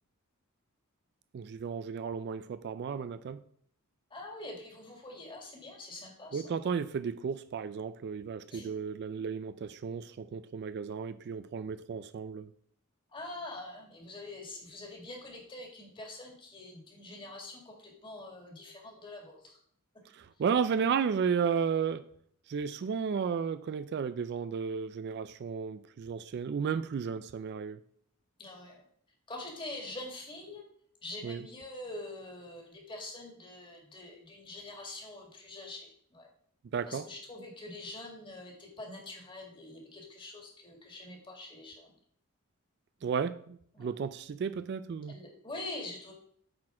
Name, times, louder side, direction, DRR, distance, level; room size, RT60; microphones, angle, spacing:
voice 1, 1.3-3.4 6.3-12.5 20.1-22.0 22.5-27.8 31.2-31.4 36.7-37.1 43.0-45.2, right 6 dB, 50° right, 0.3 m, -33 dB
voice 2, 4.1-6.5 8.5-8.7 13.1-19.6 28.4-28.8 29.3-30.6 31.0-36.3 36.9-41.9 43.8-43.9 45.1-46.1, left 2 dB, 20° left, 2.0 m, -45 dB
8.6 x 4.2 x 4.8 m
head